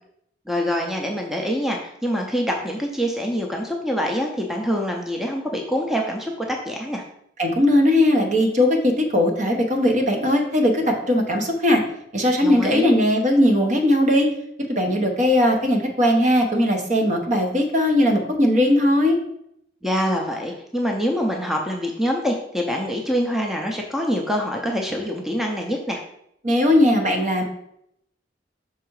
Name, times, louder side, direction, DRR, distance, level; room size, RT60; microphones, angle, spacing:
voice 1, 0.5-7.0 12.4-12.9 19.8-26.0, equal, ahead, 1 dB, 0.6 m, -25 dB
voice 2, 7.4-11.8 12.1-14.3 14.7-19.2 26.4-27.4, left 1 dB, 45° right, 3 dB, 1.0 m, -19 dB
5.8 x 3.6 x 4.7 m, 0.75 s
head